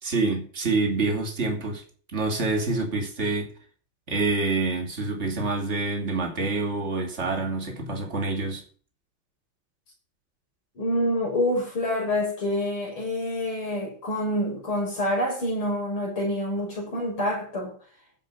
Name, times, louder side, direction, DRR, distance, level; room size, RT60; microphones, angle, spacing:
voice 1, 0.0-1.8 2.1-3.5 4.1-8.6, right 3 dB, 30° right, 2.8 m, -27 dB
voice 2, 10.8-17.7, left 1 dB, 85° left, 7.2 m, -27 dB
15.0 x 5.4 x 6.9 m
omnidirectional pair, 2.3 m